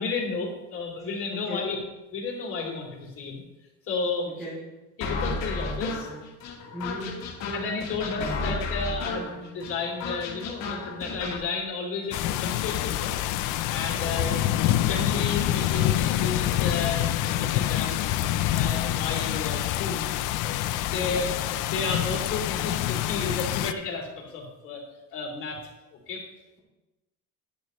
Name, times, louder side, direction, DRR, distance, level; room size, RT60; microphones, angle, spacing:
voice 1, 0.0-1.8 2.1-3.4 3.9-4.3 5.0-6.1 7.5-13.1 13.7-14.3 14.8-18.1 18.5-20.1 20.4-20.6 20.9-24.8 25.1-25.6 26.1-26.2, left 4 dB, 45° left, -2 dB, 2.9 m, -32 dB
voice 2, 1.3-1.8 4.3-4.6 6.7-7.2 13.9-14.5 20.9-21.4, equal, ahead, -8 dB, 2.2 m, -37 dB
sound 1, 5.0-11.4, left 3 dB, 65° left, 1.8 m, -33 dB
sound 2, 12.1-23.7, left 13 dB, 80° left, 0.6 m, -26 dB
10.5 x 10.5 x 3.1 m, 1.1 s
cardioid pair, 170°, 30 cm